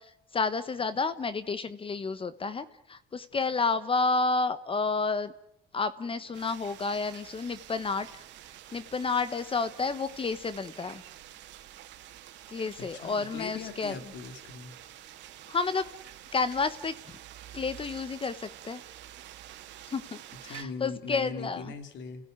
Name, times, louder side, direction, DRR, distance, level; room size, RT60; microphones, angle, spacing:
voice 1, 0.0-5.3 5.7-8.2 8.7-11.0 12.5-13.9 15.5-15.9 16.3-16.9 17.5-18.8 19.9-20.2 20.5-21.7, left 4 dB, 30° left, 14 dB, 1.1 m, -30 dB
sound 1, 6.3-20.6, right 12 dB, 70° right, 2.4 m, -48 dB
voice 2, 12.9-14.8 20.4-22.3, left 5 dB, 75° left, 9 dB, 3.2 m, -40 dB
29.0 x 16.5 x 9.6 m, 0.77 s
cardioid pair, 110°, 19 cm